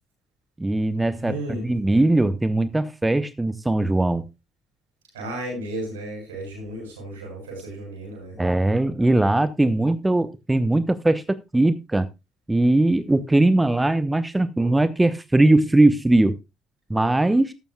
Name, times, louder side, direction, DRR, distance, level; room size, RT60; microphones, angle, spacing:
voice 1, 0.6-4.2 8.4-12.1 12.5-16.4 16.9-17.5, right 2 dB, 15° right, 1.0 m, -20 dB
voice 2, 1.2-1.7 5.1-8.3, right 1 dB, 75° right, 7.3 m, -33 dB
13.5 x 12.5 x 2.3 m
figure-of-eight pair, 45°, 0 cm